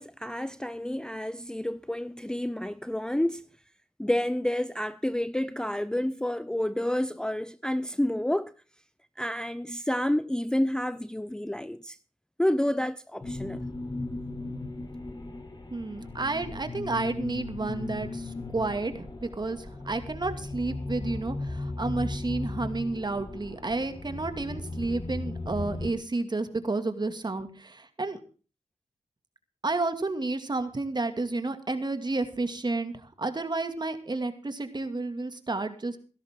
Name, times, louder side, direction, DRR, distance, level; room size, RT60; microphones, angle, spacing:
voice 1, 0.0-3.4 4.0-8.5 9.2-12.0 12.4-13.6, left 1 dB, 5° left, 0.6 m, -29 dB
sound 1, 13.2-25.9, left 2 dB, 35° left, 3.6 m, -36 dB
voice 2, 15.7-28.2 29.6-36.0, right 3 dB, 35° right, 2.3 m, -31 dB
16.5 x 13.0 x 3.7 m
cardioid pair, 55°, 12 cm